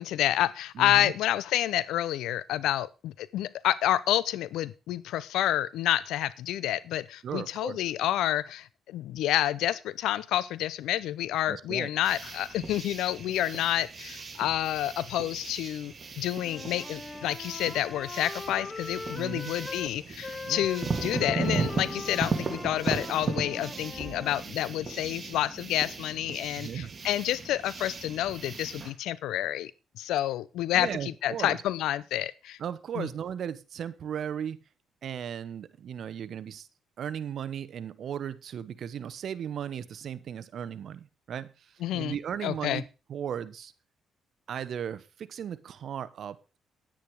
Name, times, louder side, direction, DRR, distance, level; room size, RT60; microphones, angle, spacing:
voice 1, 0.0-29.7 30.0-30.9 31.2-32.6 33.0-33.1 41.8-42.1 42.4-42.8, left 13 dB, 85° left, 19 dB, 0.7 m, -29 dB
voice 2, 0.7-1.1 7.2-7.8 11.5-11.9 19.1-19.5 20.4-20.7 26.6-26.9 30.7-31.6 32.6-34.6 35.0-36.7 37.0-43.7 44.5-46.6, right 9 dB, 60° right, 16 dB, 1.0 m, -36 dB
sound 1, 12.0-28.9, right 4 dB, 35° right, 2.6 m, -36 dB
Wind instrument woodwind instrument, 16.4-19.9 20.2-24.4, left 3 dB, 25° left, 0.7 m, -41 dB
10.5 x 9.5 x 4.9 m, 0.31 s
cardioid pair, 90°, 0 cm